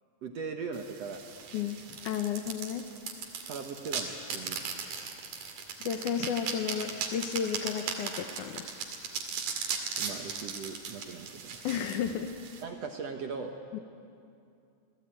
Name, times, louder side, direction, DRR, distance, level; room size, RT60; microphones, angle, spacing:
voice 1, 0.2-1.2 3.5-4.6 10.0-11.7 12.6-13.6, right 5 dB, 60° right, 4 dB, 1.8 m, -39 dB
sound 1, 0.7-12.6, right 6 dB, 80° right, 4.1 m, -38 dB
voice 2, 1.5-2.9 5.8-8.7 11.6-12.3 13.7-13.8, left 8 dB, 70° left, 7 dB, 2.1 m, -33 dB
28.0 x 18.5 x 9.0 m, 2.5 s
omnidirectional pair, 4.2 m